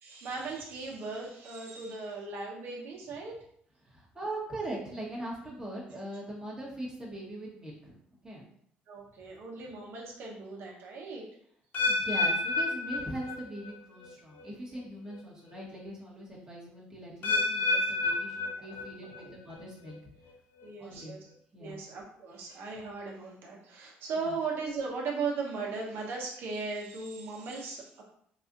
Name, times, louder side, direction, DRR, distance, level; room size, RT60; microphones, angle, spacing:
voice 1, 0.0-3.4 8.9-11.2 17.2-17.4 17.7-17.9 18.6-18.9 19.1-19.3 20.6-21.3 21.6-28.0, right 4 dB, 65° right, -1 dB, 1.0 m, -38 dB
voice 2, 3.9-7.9 8.2-8.4 11.9-20.0 20.8-21.2 21.5-21.8 24.2-24.3, right 1 dB, 20° right, -4 dB, 1.2 m, -41 dB
sound 1, 11.7-13.8 14.0-14.5 15.1-15.2 17.2-19.2 19.5-19.9 20.6-20.7, left 2 dB, 55° left, 0.8 m, -30 dB
4.0 x 2.5 x 2.5 m, 0.66 s
cardioid pair, 85°, 4 cm